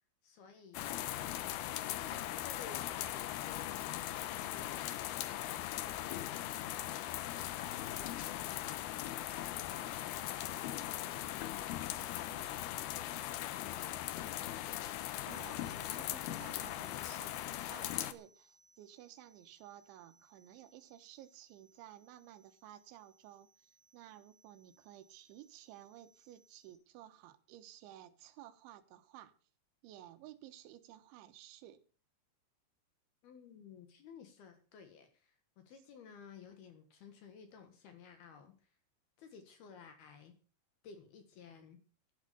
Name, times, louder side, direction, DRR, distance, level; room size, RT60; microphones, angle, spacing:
voice 1, 0.2-1.1 1.9-4.8 5.8-6.3 7.2-8.9 9.4-11.1 16.0-16.2 33.2-38.7 39.2-40.3 40.8-41.8, left 6 dB, 60° left, 3.2 m, -55 dB
sound 1, 0.7-18.1, left 13 dB, 90° left, 2.2 m, -39 dB
sound 2, 15.3-26.7, right 3 dB, 5° left, 5.8 m, -70 dB
voice 2, 15.3-29.3 29.8-31.8, right 13 dB, 75° right, 3.5 m, -55 dB
11.5 x 11.5 x 6.8 m
omnidirectional pair, 5.6 m